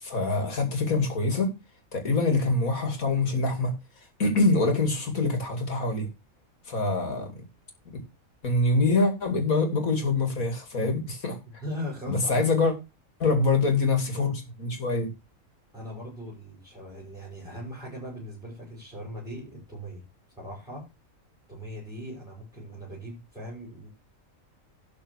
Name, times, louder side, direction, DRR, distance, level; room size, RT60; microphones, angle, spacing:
voice 1, 0.0-1.5 1.9-3.7 4.2-6.1 6.7-7.3 8.4-11.4 12.1-12.7 13.2-15.1, left 3 dB, 75° left, 3.1 m, -25 dB
voice 2, 11.6-12.4 15.7-20.0 20.4-20.8 21.5-23.9, equal, ahead, 6.1 m, -39 dB
12.0 x 4.9 x 6.4 m
omnidirectional pair, 1.5 m